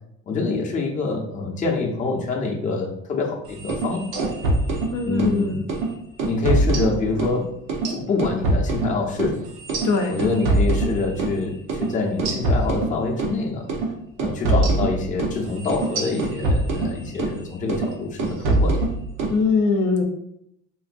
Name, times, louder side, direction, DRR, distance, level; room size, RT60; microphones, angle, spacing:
voice 1, 0.3-4.1 5.0-5.6 6.3-7.5 7.9-9.5 10.1-13.7 14.2-18.8, left 3 dB, 25° left, -1 dB, 0.6 m, -26 dB
sound 1, 3.6-5.4 5.7-5.9 6.2-7.4 7.7-11.4 11.7-11.9 12.2-13.4 13.7-13.9 14.2-17.4 17.7-17.9 18.2-19.4, right 2 dB, 75° right, 0.9 m, -23 dB
voice 2, 4.9-5.7 9.8-10.2 19.3-20.0, left 4 dB, 65° left, 3 dB, 0.6 m, -21 dB
3.8 x 2.6 x 2.5 m, 0.75 s
cardioid pair, 125°, 32 cm